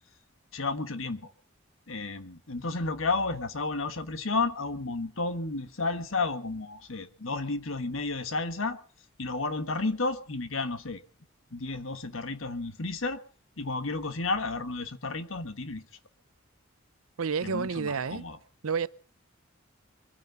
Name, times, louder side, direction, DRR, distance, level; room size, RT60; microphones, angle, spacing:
voice 1, 0.5-1.3 1.9-8.8 9.2-11.0 11.5-13.2 13.6-15.8 17.4-18.4, left 3 dB, 70° left, 1.4 m, -32 dB
voice 2, 17.2-18.2 18.6-18.9, right 5 dB, 90° right, 0.7 m, -29 dB
24.0 x 9.4 x 5.6 m
head